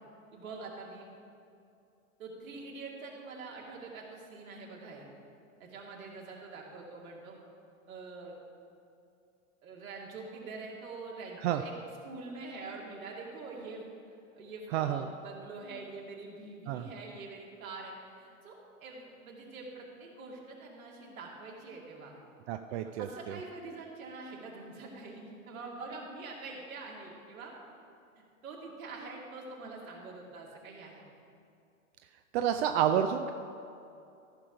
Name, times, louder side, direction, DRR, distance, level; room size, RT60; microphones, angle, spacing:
voice 1, 0.3-1.1 2.2-5.1 5.6-7.4 7.9-8.3 9.6-11.7 12.0-13.8 14.1-22.1 23.0-27.5 28.4-31.0, right 3 dB, 75° right, -2 dB, 2.5 m, -45 dB
voice 2, 14.7-15.0 16.7-16.9 22.5-23.4 32.3-33.3, right 10 dB, 50° right, 7 dB, 0.5 m, -29 dB
14.5 x 5.0 x 5.8 m, 2.6 s
hypercardioid pair, 105°, 41 cm